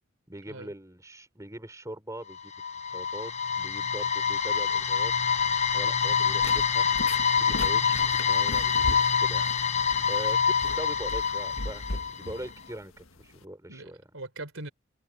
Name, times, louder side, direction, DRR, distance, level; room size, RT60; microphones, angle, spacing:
voice 1, 0.3-5.1 5.7-6.9 7.4-9.5 10.1-14.0, right 1 dB, 15° right, 4.7 m, -41 dB
sound 1, 2.3-12.4, left 6 dB, 30° left, 1.1 m, -26 dB
sound 2, 6.0-13.4, left 2 dB, 75° left, 1.6 m, -39 dB
voice 2, 13.7-14.7, right 2 dB, 70° right, 3.8 m, -42 dB
head